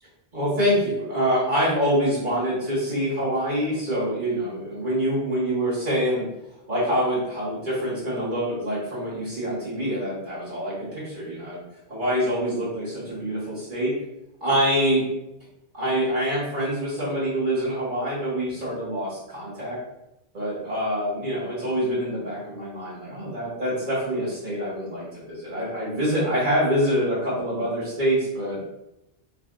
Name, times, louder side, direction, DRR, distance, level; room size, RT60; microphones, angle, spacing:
voice 1, 0.3-6.3 6.7-11.6 11.9-13.9 14.4-15.0 15.7-19.8 20.3-28.6, equal, 50° right, -9 dB, 1.8 m, -25 dB
5.5 x 2.5 x 2.3 m, 0.89 s
omnidirectional pair, 1.1 m